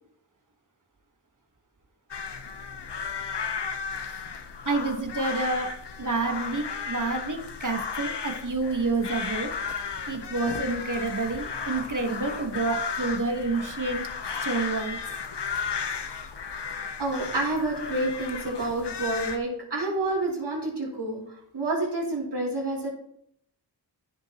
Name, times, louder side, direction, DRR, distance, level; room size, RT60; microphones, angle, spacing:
sound 1, 2.1-19.4, left 5 dB, 80° left, 0.9 m, -34 dB
voice 1, 4.6-5.7 6.0-9.5 10.1-14.0 14.4-15.0, right 3 dB, 50° right, 4 dB, 1.5 m, -28 dB
voice 2, 17.0-22.9, right 2 dB, 75° right, -3 dB, 4.3 m, -29 dB
15.0 x 6.1 x 3.0 m, 0.72 s
wide cardioid pair, 80°, 41 cm